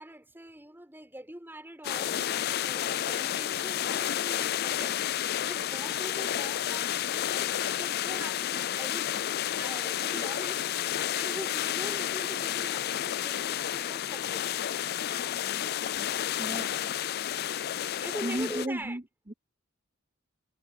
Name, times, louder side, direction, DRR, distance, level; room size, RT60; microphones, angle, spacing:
voice 1, 0.0-9.2 9.6-14.5 18.0-19.0, right 1 dB, 10° right, 7.0 m, -43 dB
sound 1, 1.8-18.7, left 11 dB, 50° left, 0.4 m, -31 dB
voice 2, 16.4-16.9 18.2-19.3, right 1 dB, 30° right, 3.9 m, -35 dB
head